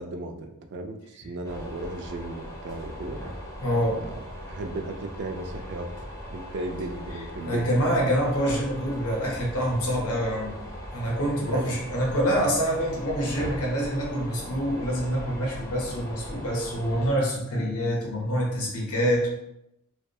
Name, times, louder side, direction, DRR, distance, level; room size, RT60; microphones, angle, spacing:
voice 1, 0.0-3.2 3.9-5.9 6.3-7.7 11.4-11.9, right 2 dB, 55° right, 5 dB, 0.3 m, -35 dB
sound 1, 1.4-17.1, equal, 15° left, 0.4 m, -39 dB
voice 2, 3.6-4.0 7.4-10.5 10.9-19.3, equal, 80° left, -3 dB, 0.7 m, -26 dB
2.3 x 2.2 x 2.6 m, 0.83 s
head